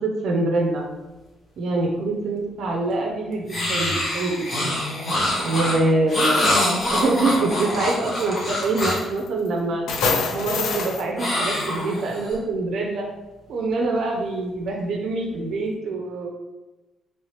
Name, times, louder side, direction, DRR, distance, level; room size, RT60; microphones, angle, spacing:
voice 1, 0.0-0.9 1.6-4.7 5.4-6.6 6.9-9.8 10.3-13.1 13.5-16.3, right 2 dB, 70° right, 0 dB, 0.4 m, -25 dB
sound 1, 3.5-9.1 11.2-12.3, left 1 dB, 45° left, 0.9 m, -25 dB
sound 2, 6.3-6.5 6.8-7.3 8.4-8.5 8.8-9.5 9.9-11.0, left 4 dB, 80° left, 0.4 m, -25 dB
3.0 x 2.8 x 3.1 m, 1.1 s
cardioid pair, 90°, 0 cm